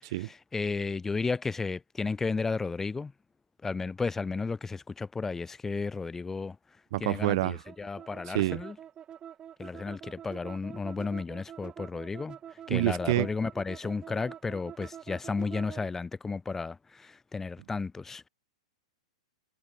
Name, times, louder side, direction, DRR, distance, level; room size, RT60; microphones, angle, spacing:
voice 1, 0.0-3.1 3.6-6.6 7.0-8.8 9.6-18.3, left 4 dB, 10° left, 2.0 m, -33 dB
voice 2, 6.9-7.6 8.3-8.6 12.7-13.3, right 18 dB, 55° right, 0.8 m, -27 dB
sound 1, 7.6-15.9, right 9 dB, 25° right, 4.5 m, -46 dB
hypercardioid pair, 105°, 3 cm